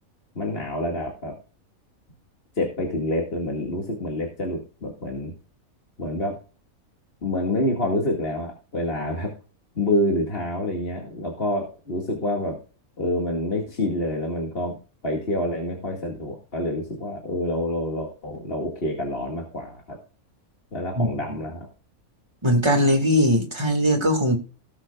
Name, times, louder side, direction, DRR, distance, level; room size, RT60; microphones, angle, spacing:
voice 1, 0.4-1.3 2.6-5.3 6.0-6.3 7.2-9.3 9.8-12.6 13.0-14.8 15.0-20.0 20.7-21.7, left 1 dB, 40° left, -1 dB, 2.4 m, -27 dB
voice 2, 22.4-24.4, equal, 20° right, 4 dB, 2.1 m, -20 dB
19.0 x 7.4 x 2.4 m, 0.35 s
omnidirectional pair, 1.5 m